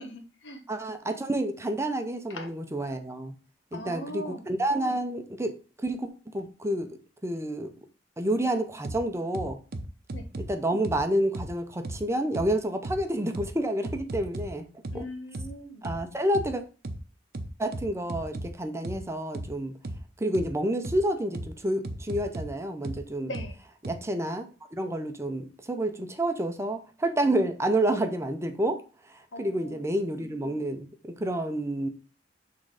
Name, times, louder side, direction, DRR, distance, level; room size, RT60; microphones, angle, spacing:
voice 1, 0.1-0.6 2.3-2.5 3.7-4.4 10.1-10.3 14.9-15.9 23.2-23.6 29.3-29.8, equal, 80° left, 5 dB, 1.3 m, -40 dB
voice 2, 0.7-3.3 3.7-6.1 6.3-7.7 8.2-9.6 10.4-14.7 14.9-15.1 15.8-16.6 17.6-19.7 20.2-23.3 23.8-24.5 24.7-28.8 29.4-31.9, right 1 dB, 15° right, 7 dB, 0.7 m, -29 dB
sound 1, 8.8-9.0 9.3-10.5 10.8-11.0 11.3-11.5 11.8-12.0 12.3-12.5 12.8-13.0 13.3-13.5 13.8-14.5 14.8-15.0 15.3-15.5 15.8-16.0 16.3-16.5 16.8-17.0 17.3-18.5 18.8-19.0 19.3-19.5 19.8-20.0 20.3-20.5 20.8-21.0 21.3-21.5 21.8-22.5 22.8-23.0 23.3-23.5 23.8-23.9, right 1 dB, 55° right, 0.8 m, -35 dB
6.4 x 3.7 x 4.8 m, 0.35 s
head